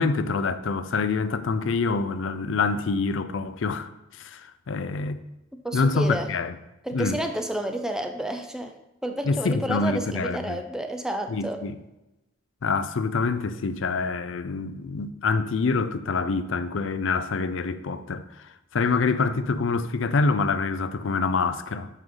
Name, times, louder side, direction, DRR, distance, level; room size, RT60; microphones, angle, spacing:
voice 1, 0.0-3.9 4.2-4.4 4.7-5.2 5.7-6.5 6.9-7.2 9.3-10.6 11.3-11.7 12.6-18.2 18.7-21.9, left 4 dB, 70° left, 0.5 m, -26 dB
voice 2, 5.5-6.3 6.8-11.6, right 1 dB, 5° right, 0.5 m, -30 dB
7.8 x 5.5 x 3.8 m
head